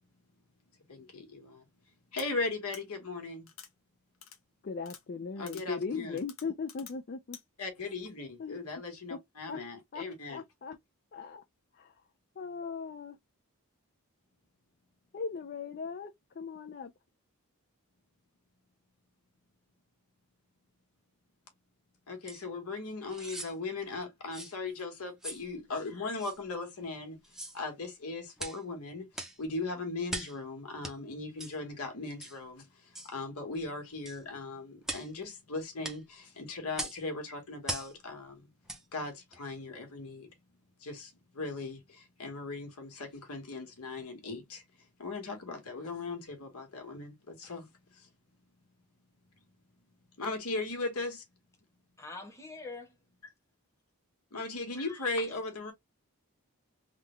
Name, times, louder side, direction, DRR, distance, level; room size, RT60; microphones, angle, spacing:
voice 1, 0.9-1.6 2.1-3.5 5.4-6.2 7.6-10.4 22.1-27.2 27.5-38.5 38.9-40.3 40.8-44.6 45.0-48.1 50.2-51.2 54.3-55.7, left 3 dB, 85° left, 1.5 m, -38 dB
sound 1, 2.2-2.3 2.7-2.8 3.5-3.7 4.2-4.4 4.8-5.0 5.5-5.6 6.2-6.9 7.3-7.4, left 9 dB, 65° left, 0.8 m, -48 dB
voice 2, 4.6-7.4 8.4-8.6 9.1-9.2 9.5-9.6 9.9-10.8 11.1-11.4 11.7-12.0 12.4-13.2 15.1-16.9, left 5 dB, 45° left, 0.4 m, -38 dB
sound 2, 22.3-22.4 23.1-23.5 24.3-24.6 25.2-25.5 26.2-26.4 27.2-27.6 28.4-28.6 29.1-29.4 30.1-30.4 30.8-31.0 31.4-31.6 32.2-32.4 32.9-33.1 34.0-34.2 34.8-35.1 35.8-36.0 36.7-37.0 37.6-37.9 38.6-38.8 39.3-39.4, right 1 dB, ahead, 0.6 m, -40 dB
voice 3, 52.0-53.0 54.8-55.0, left 3 dB, 15° left, 0.9 m, -44 dB
3.6 x 2.3 x 3.1 m
head